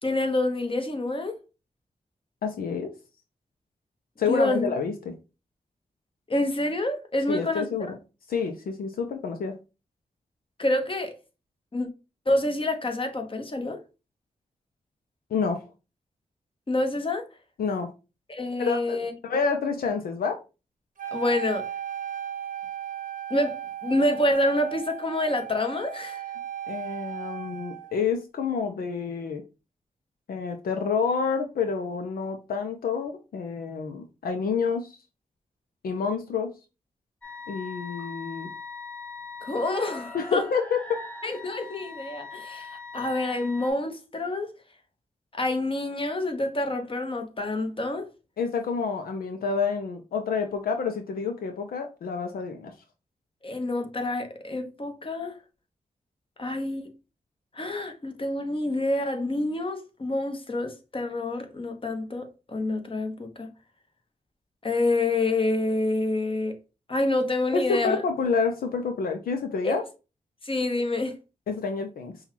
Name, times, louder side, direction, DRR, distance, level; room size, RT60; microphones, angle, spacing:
voice 1, 0.0-1.3 4.3-4.7 6.3-7.7 10.6-11.1 11.7-11.9 12.3-13.8 16.7-17.3 18.3-19.1 21.1-21.7 23.3-26.2 38.0-38.1 39.4-40.5 41.2-44.5 45.3-48.1 53.4-55.4 56.4-56.9 57.5-63.5 64.6-66.5 66.9-68.0 69.6-69.8 70.4-71.2, left 2 dB, 35° left, 1.1 m, -27 dB
voice 2, 2.4-2.9 4.2-5.2 7.3-8.0 8.3-9.5 15.3-15.6 17.6-17.9 18.6-20.4 26.7-29.4 30.3-34.9 35.8-36.5 37.5-38.5 40.1-41.0 48.4-52.7 67.5-69.8 71.5-72.2, left 5 dB, 80° left, 0.5 m, -28 dB
Wind instrument woodwind instrument, 21.0-27.9, right 10 dB, 65° right, 0.8 m, -36 dB
sound 1, 37.2-43.7, left 4 dB, 10° left, 0.9 m, -41 dB
5.4 x 2.3 x 2.9 m
cardioid pair, 50°, 15 cm